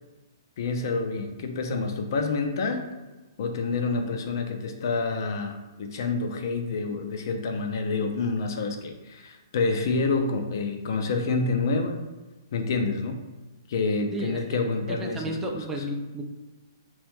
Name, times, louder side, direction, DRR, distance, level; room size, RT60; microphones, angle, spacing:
voice 1, 0.6-2.9 3.4-12.0 12.5-13.2 13.7-15.9, left 3 dB, 60° left, 5 dB, 0.5 m, -28 dB
voice 2, 14.1-14.6 14.9-16.2, right 1 dB, 15° right, 2 dB, 0.4 m, -33 dB
3.0 x 2.5 x 3.4 m, 1.2 s
hypercardioid pair, 135°, 2 cm